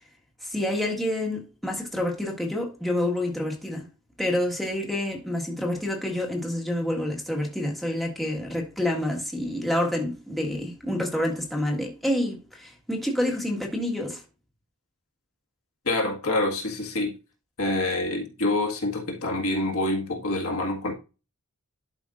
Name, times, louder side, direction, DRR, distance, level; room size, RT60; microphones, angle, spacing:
voice 1, 0.4-3.9 4.2-14.2, left 1 dB, ahead, 1.6 m, -28 dB
voice 2, 15.9-17.2 17.6-20.9, left 2 dB, 70° left, 1.8 m, -26 dB
11.5 x 5.2 x 2.5 m
head